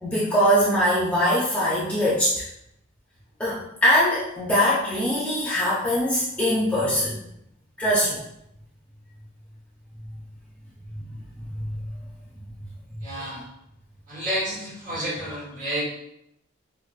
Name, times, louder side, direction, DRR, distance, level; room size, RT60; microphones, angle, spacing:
voice 1, 0.0-2.5 3.4-7.2 7.8-8.2 11.5-11.8 13.1-13.3, equal, 5° left, -8 dB, 0.5 m, -22 dB
voice 2, 13.0-13.4 14.1-15.8, equal, 40° right, -6 dB, 1.4 m, -30 dB
4.6 x 2.1 x 2.4 m, 0.80 s
head